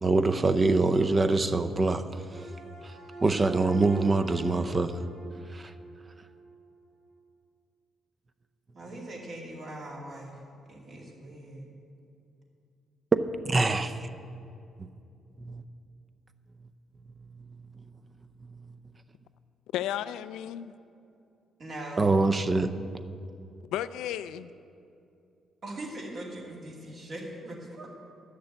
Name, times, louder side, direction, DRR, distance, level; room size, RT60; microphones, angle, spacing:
voice 1, 0.0-2.2 3.2-5.0 5.5-5.7 13.4-14.1 15.4-15.6 17.8-17.9 22.0-22.7, right 3 dB, 30° right, 10 dB, 0.6 m, -24 dB
sound 1, 2.3-6.6, right 3 dB, 70° right, 2.5 m, -42 dB
voice 2, 8.7-10.4 10.7-11.6 21.6-22.1 25.6-27.9, right 1 dB, 50° right, -2 dB, 2.6 m, -41 dB
voice 3, 19.7-20.7 23.7-24.5, left 11 dB, 90° left, 14 dB, 0.3 m, -33 dB
10.5 x 6.7 x 7.9 m, 2.6 s
cardioid pair, 90°, 0 cm